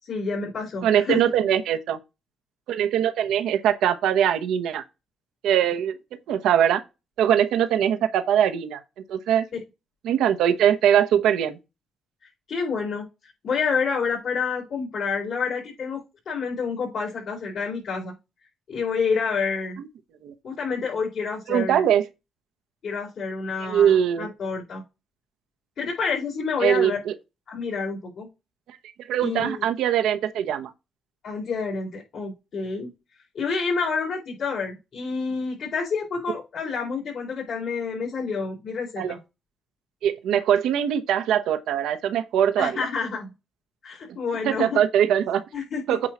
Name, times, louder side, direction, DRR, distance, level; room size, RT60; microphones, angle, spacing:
voice 1, 0.0-1.2 12.5-13.1 13.4-18.1 18.7-19.8 20.4-21.8 22.8-24.8 25.8-27.0 27.5-28.3 29.2-29.6 31.2-32.9 33.3-39.2 42.6-43.3 43.8-44.8 45.5-46.0, left 5 dB, 60° left, 4.3 m, -28 dB
voice 2, 0.8-2.0 2.7-4.8 5.4-6.0 6.3-6.8 7.2-8.8 9.1-9.4 10.0-11.6 19.8-19.9 20.2-20.3 21.5-22.0 23.6-24.3 26.6-27.1 28.7-30.7 39.0-39.1 40.0-42.8 44.4-45.4 45.9-46.0, right 9 dB, 85° right, 0.9 m, -22 dB
8.6 x 3.1 x 5.9 m
cardioid pair, 90°, 0 cm